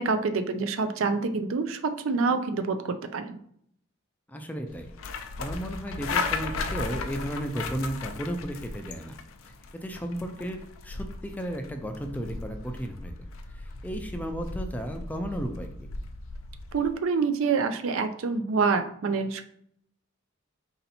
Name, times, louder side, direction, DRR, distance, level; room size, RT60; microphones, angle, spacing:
voice 1, 0.0-3.4 16.7-19.4, right 4 dB, 70° right, 8 dB, 0.4 m, -27 dB
voice 2, 4.3-4.9 5.4-9.1 9.4-9.5 9.8-13.1 13.5-15.9, equal, 10° left, 5 dB, 0.4 m, -34 dB
sound 1, 4.7-16.9, left 4 dB, 70° left, 0.4 m, -36 dB
4.2 x 2.8 x 4.0 m, 0.68 s
head